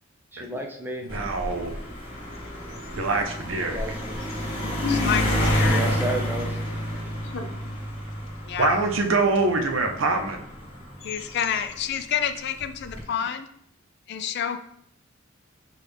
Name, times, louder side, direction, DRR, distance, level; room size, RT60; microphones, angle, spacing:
voice 1, 0.3-1.0 3.6-4.2 5.7-6.6, right 2 dB, 10° right, 2 dB, 0.5 m, -32 dB
sound 1, 1.1-11.8 12.6-13.0, equal, 25° left, 1.3 m, -29 dB
voice 2, 1.1-1.7 3.0-4.0 8.6-10.4, right 3 dB, 75° right, 4 dB, 0.6 m, -24 dB
voice 3, 4.3-5.5 6.5-7.0 7.3-7.6 11.0-11.3, left 4 dB, 70° left, 4 dB, 0.7 m, -33 dB
voice 4, 4.9-5.8 8.5-8.7 11.0-13.5 14.1-14.6, left 8 dB, 55° left, 9 dB, 0.3 m, -28 dB
6.0 x 2.4 x 3.4 m, 0.70 s
head